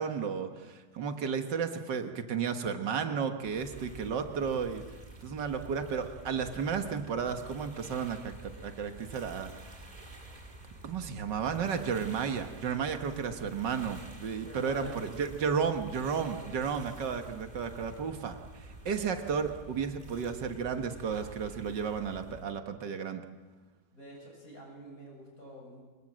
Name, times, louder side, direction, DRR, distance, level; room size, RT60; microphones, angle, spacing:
voice 1, 0.0-4.8 5.2-9.9 10.8-23.2, right 6 dB, 85° right, 7 dB, 2.1 m, -33 dB
sound 1, 3.4-22.4, right 2 dB, 25° right, 2.4 m, -49 dB
voice 2, 14.4-15.0 16.3-16.8 23.9-25.8, equal, 55° left, -2 dB, 8.5 m, -48 dB
24.5 x 21.5 x 7.5 m, 1.3 s
omnidirectional pair, 1.9 m